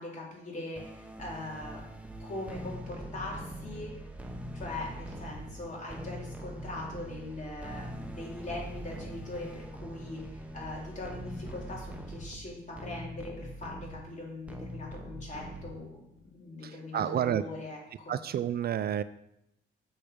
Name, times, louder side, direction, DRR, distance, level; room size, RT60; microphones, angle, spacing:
voice 1, 0.0-1.8 2.2-3.9 4.5-17.8 18.0-18.2, left 2 dB, 40° left, -3 dB, 3.6 m, -41 dB
sound 1, 0.8-16.2, right 1 dB, 5° right, 1.0 m, -43 dB
voice 2, 16.6-17.4 18.1-19.0, right 10 dB, 50° right, 14 dB, 0.4 m, -30 dB
7.1 x 6.6 x 5.2 m, 0.81 s
cardioid pair, 90°, 20 cm